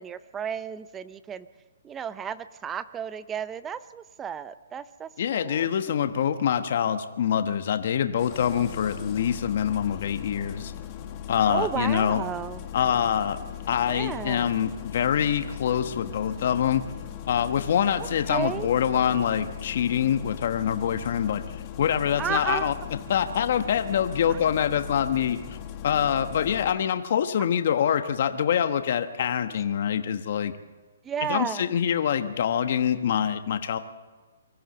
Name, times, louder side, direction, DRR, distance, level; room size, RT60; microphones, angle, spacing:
voice 1, 0.0-1.5 1.8-5.7 11.5-12.6 13.9-14.4 18.0-18.7 22.2-22.7 24.3-24.4 31.0-31.7, right 8 dB, 15° right, 15 dB, 0.5 m, -33 dB
voice 2, 5.2-10.7 11.3-12.2 12.7-13.4 13.7-16.8 17.3-21.4 21.8-22.7 23.1-25.4 25.8-30.5 31.3-33.8, left 9 dB, 50° left, 9 dB, 1.2 m, -25 dB
Engine starting, 8.2-26.7, left 10 dB, 25° left, 1.6 m, -39 dB
24.0 x 14.5 x 7.9 m, 1.3 s
hypercardioid pair, 160°, 0 cm